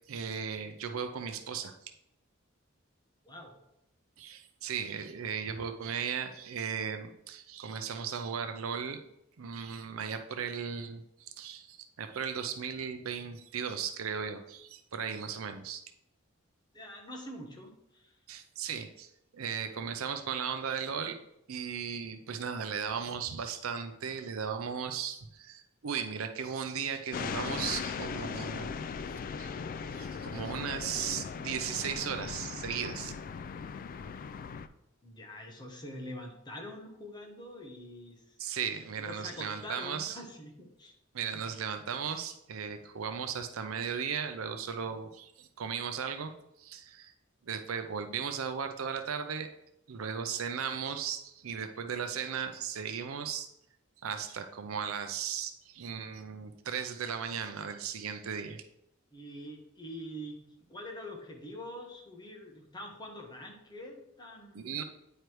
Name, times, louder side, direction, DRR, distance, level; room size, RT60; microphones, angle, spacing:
voice 1, 0.1-1.9 4.2-9.0 9.4-15.8 18.3-21.2 21.5-28.7 29.4-29.5 29.9-33.1 38.4-40.2 41.1-46.3 46.6-47.1 47.4-49.5 49.9-53.5 54.0-58.6 64.5-64.8, right 7 dB, 80° right, 7 dB, 0.5 m, -36 dB
voice 2, 16.7-18.1 35.0-38.3 39.0-40.9 41.3-41.4 59.1-60.4 60.7-64.8, left 1 dB, 20° left, 1 dB, 1.1 m, -45 dB
sound 1, 27.1-34.7, left 6 dB, 40° left, 0.3 m, -38 dB
9.0 x 3.3 x 4.5 m, 0.81 s
head